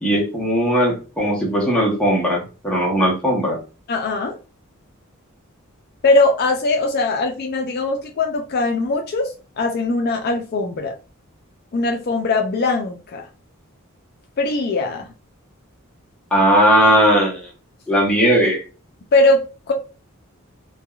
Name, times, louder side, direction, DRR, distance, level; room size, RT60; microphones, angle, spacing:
voice 1, 0.0-3.6 16.3-17.5 17.9-18.6, equal, 5° left, -3 dB, 0.8 m, -18 dB
voice 2, 3.9-4.3 6.0-10.9 11.7-13.3 14.4-15.1 19.1-19.7, left 2 dB, 45° left, 3 dB, 0.4 m, -20 dB
3.3 x 2.2 x 2.3 m, 0.33 s
head